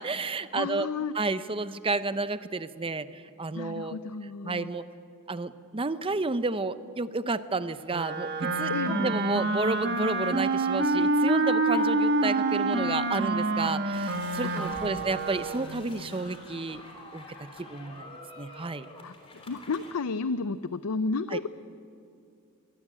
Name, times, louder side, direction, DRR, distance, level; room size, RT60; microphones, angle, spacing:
voice 1, 0.0-0.9 1.1-4.0 4.4-4.9 5.3-16.8 17.1-18.9 21.3-21.4, right 3 dB, 25° right, 13 dB, 0.7 m, -31 dB
voice 2, 0.5-1.2 3.5-4.7 8.7-9.2 14.4-15.0 19.0-21.5, left 4 dB, 85° left, 13 dB, 0.6 m, -32 dB
Wind instrument woodwind instrument, 7.9-15.8, right 2 dB, 50° right, 1.4 m, -27 dB
sound 1, 13.9-19.9, left 2 dB, 25° left, 3.5 m, -48 dB
24.0 x 19.0 x 8.7 m, 2.5 s
head